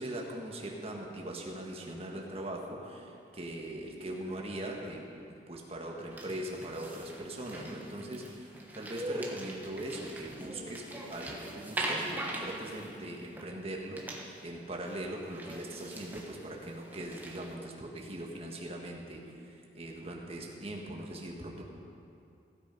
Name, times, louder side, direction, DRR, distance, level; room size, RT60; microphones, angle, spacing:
voice 1, 0.0-5.0 5.5-21.6, right 1 dB, 35° right, 0 dB, 1.6 m, -41 dB
sound 1, 6.1-13.7 14.0-14.6 14.8-14.9 15.3-17.5, right 1 dB, 10° right, 1.2 m, -41 dB
16.0 x 8.9 x 5.3 m, 2.6 s
head